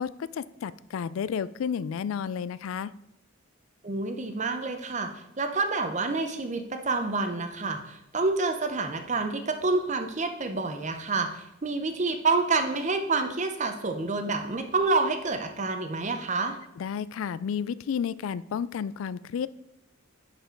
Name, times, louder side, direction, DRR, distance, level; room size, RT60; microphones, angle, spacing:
voice 1, 0.0-2.9 16.8-19.5, left 7 dB, 75° left, 19 dB, 0.3 m, -31 dB
voice 2, 3.8-5.1 5.4-16.6, right 3 dB, 35° right, 7 dB, 0.7 m, -28 dB
11.0 x 4.4 x 4.5 m, 0.84 s
head